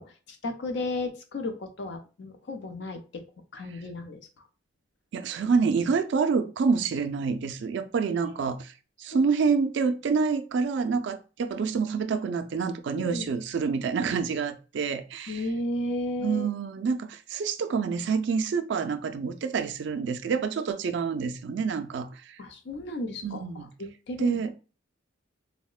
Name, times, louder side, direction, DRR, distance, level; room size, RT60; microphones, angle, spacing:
voice 1, 0.0-3.2 3.5-4.2 8.1-8.3 9.1-9.3 12.9-13.3 15.3-16.5 22.4-24.4, left 2 dB, 60° left, 0.5 m, -34 dB
voice 2, 5.1-8.7 9.0-15.4 16.2-22.4 23.2-23.7 24.2-24.5, right 5 dB, 60° right, 0.3 m, -27 dB
3.7 x 2.1 x 2.3 m
head